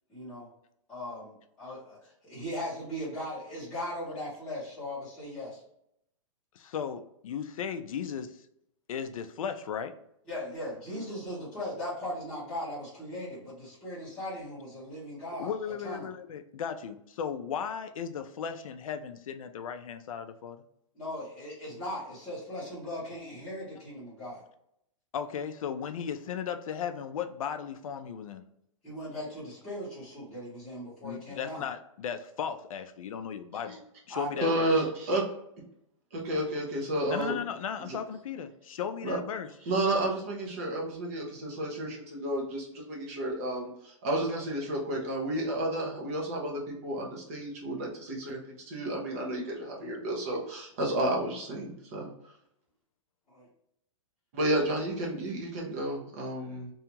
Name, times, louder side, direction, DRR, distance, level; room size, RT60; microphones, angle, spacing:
voice 1, 0.1-0.5 0.9-5.6 10.3-15.5 15.8-16.1 20.9-24.4 28.8-31.6 34.1-34.5 53.3-53.5, left 1 dB, 5° left, -13 dB, 0.8 m, -38 dB
voice 2, 6.6-8.4 8.9-9.9 15.4-20.6 25.1-28.4 31.0-33.8 34.1-34.7 37.1-38.5 38.8-39.5, left 7 dB, 80° left, 9 dB, 0.4 m, -36 dB
voice 3, 34.4-35.3 36.1-37.4 39.0-39.2 39.7-52.1 54.3-56.7, right 1 dB, 25° right, -2 dB, 0.7 m, -31 dB
2.7 x 2.3 x 2.8 m, 0.76 s
hypercardioid pair, 180°, 17 cm